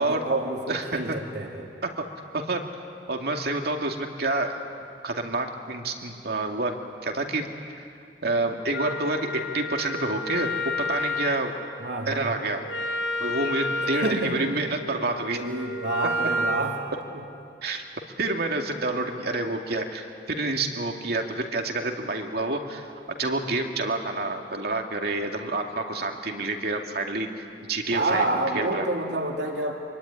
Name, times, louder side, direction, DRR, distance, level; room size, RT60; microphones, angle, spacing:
voice 1, 0.0-1.7 11.2-11.3 11.8-12.3 13.8-14.4 15.2-16.8 17.1-17.2 27.9-29.7, right 2 dB, 85° right, 1 dB, 2.7 m, -28 dB
voice 2, 0.7-1.2 2.0-2.1 2.3-2.6 3.1-4.6 5.0-7.5 8.2-11.5 12.1-12.6 13.2-15.4 17.6-17.8 18.2-28.9, right 2 dB, 65° right, 3 dB, 2.5 m, -28 dB
Wind instrument woodwind instrument, 8.7-16.7, left 1 dB, 90° left, 3.2 m, -31 dB
25.5 x 23.5 x 9.9 m, 2.4 s
head